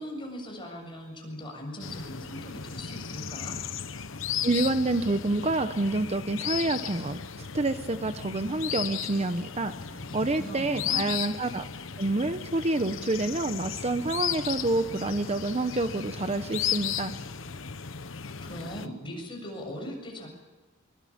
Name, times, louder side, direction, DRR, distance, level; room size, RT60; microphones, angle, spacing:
voice 1, 0.0-3.5 9.9-11.1 18.4-20.3, equal, 25° left, 1 dB, 7.5 m, -39 dB
sound 1, 1.8-18.9, left 8 dB, 70° left, 1.0 m, -35 dB
voice 2, 4.4-9.7 10.1-11.6 12.0-17.1, right 2 dB, 30° right, 10 dB, 0.8 m, -28 dB
23.0 x 22.5 x 8.7 m, 1.2 s
head